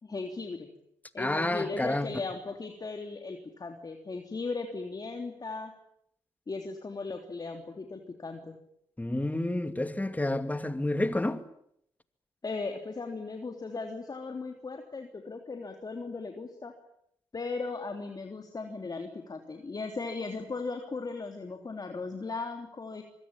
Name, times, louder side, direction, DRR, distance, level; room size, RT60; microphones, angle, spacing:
voice 1, 0.0-0.7 1.1-5.7 6.5-8.5 12.4-16.8 17.3-23.0, left 3 dB, 40° left, 3.2 m, -37 dB
voice 2, 1.2-2.1 9.0-11.4, left 1 dB, 15° left, 2.6 m, -29 dB
25.0 x 22.5 x 8.9 m
hypercardioid pair, 45°, 11 cm